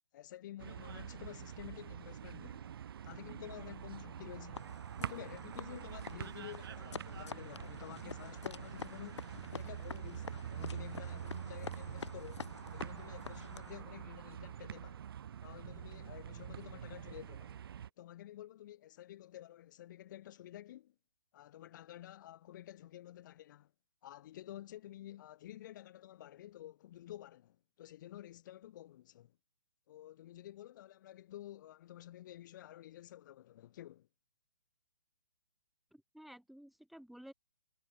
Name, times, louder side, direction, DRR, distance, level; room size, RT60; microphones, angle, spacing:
voice 1, 0.1-2.7 3.0-15.1 15.4-17.6 18.0-20.9 21.3-23.7 24.0-29.4 29.9-34.1, left 13 dB, 45° left, 2.5 m, -51 dB
sound 1, 0.6-17.9, right 9 dB, 55° right, 1.8 m, -46 dB
sound 2, 4.6-13.8, left 5 dB, 85° left, 1.4 m, -48 dB
voice 2, 35.9-37.3, equal, ahead, 4.0 m, -54 dB
hypercardioid pair, 145°, 14 cm